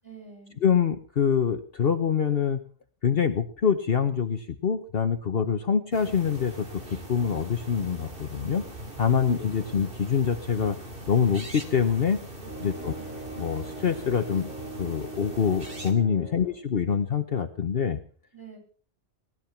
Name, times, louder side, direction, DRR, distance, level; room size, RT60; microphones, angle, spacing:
voice 1, 0.0-0.6 9.0-9.8 12.6-13.0 16.3-16.5 18.3-18.6, right 5 dB, 15° right, 1 dB, 7.6 m, -48 dB
voice 2, 0.6-2.6 3.0-8.7 9.0-10.8 11.1-12.2 12.6-13.0 13.4-14.5 14.8-18.0, left 7 dB, 55° left, 7 dB, 1.2 m, -25 dB
sound 1, 5.9-15.9, right 1 dB, 50° right, 2.9 m, -41 dB
sound 2, 12.3-16.6, right 3 dB, 80° right, 8.3 m, -41 dB
19.5 x 12.5 x 5.9 m, 0.44 s
omnidirectional pair, 1.2 m